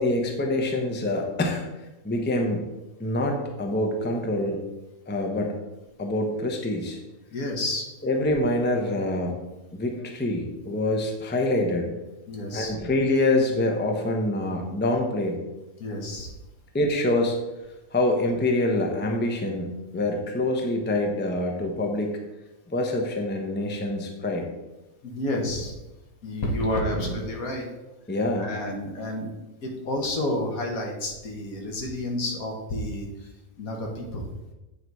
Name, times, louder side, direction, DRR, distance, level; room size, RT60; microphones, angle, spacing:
voice 1, 0.0-1.6 2.0-2.7 3.0-4.6 5.1-5.6 6.0-7.0 8.0-9.4 9.7-11.9 12.5-15.4 16.7-17.4 17.9-22.2 22.7-24.5 28.1-28.5, left 1 dB, 10° left, 2 dB, 0.6 m, -25 dB
voice 2, 7.3-7.9 12.3-12.7 15.8-16.3 25.0-25.7 26.2-27.7 28.3-29.3 29.6-33.3 33.6-34.3, left 1 dB, 70° left, 1 dB, 1.7 m, -30 dB
8.6 x 4.0 x 4.7 m, 1.0 s
omnidirectional pair, 1.5 m